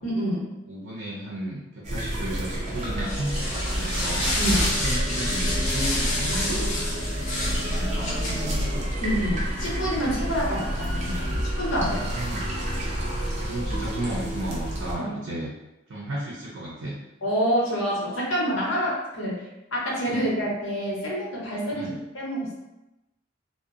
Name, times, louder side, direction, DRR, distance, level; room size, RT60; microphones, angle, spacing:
voice 1, 0.0-0.5 4.4-4.7 6.6-6.8 9.0-12.0 15.0-15.1 17.2-19.4 19.7-22.5, equal, 85° left, -4 dB, 0.8 m, -27 dB
voice 2, 0.7-4.2 4.8-6.4 7.4-8.9 11.7-12.4 13.4-15.5 15.9-17.0 20.1-20.2 21.7-22.0, right 1 dB, 85° right, -5 dB, 0.5 m, -34 dB
sound 1, 1.8-14.9, equal, 35° right, 0.6 m, -29 dB
sound 2, 2.3-14.8, left 1 dB, 40° left, 0.7 m, -31 dB
2.7 x 2.1 x 2.4 m, 0.95 s
head